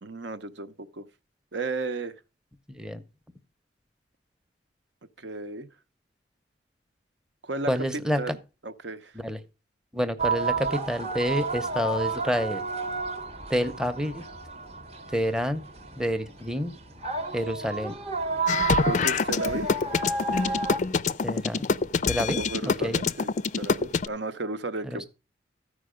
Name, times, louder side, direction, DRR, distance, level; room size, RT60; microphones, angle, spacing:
voice 1, 0.0-1.1 1.5-2.2 5.2-5.7 7.4-8.4 8.6-9.2 18.8-19.7 22.4-25.0, right 3 dB, 75° right, 0.8 m, -34 dB
voice 2, 2.7-3.0 7.7-8.3 9.2-9.4 9.9-12.6 13.5-14.2 15.1-15.6 16.0-16.7 17.3-17.9 21.2-21.6 22.1-23.0 24.9-25.0, equal, 5° right, 0.7 m, -28 dB
sound 1, 10.2-20.8, right 3 dB, 35° right, 0.9 m, -31 dB
sound 2, 18.5-24.1, left 5 dB, 40° left, 0.4 m, -25 dB
14.0 x 5.0 x 5.0 m
head